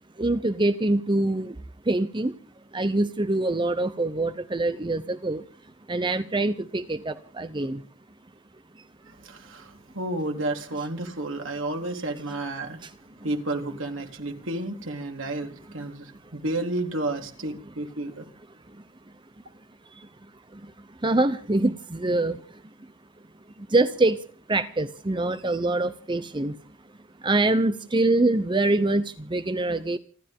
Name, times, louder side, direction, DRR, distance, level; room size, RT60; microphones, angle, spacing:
voice 1, 0.2-1.6 1.9-2.3 2.7-5.4 5.9-7.8 12.8-12.9 20.0-20.1 20.5-20.7 21.0-22.6 23.6-24.2 24.5-26.6 27.2-30.0, right 2 dB, 25° right, 0.8 m, -24 dB
voice 2, 9.1-12.8 13.2-18.3, right 2 dB, 85° right, 3.8 m, -31 dB
29.0 x 12.5 x 3.7 m
head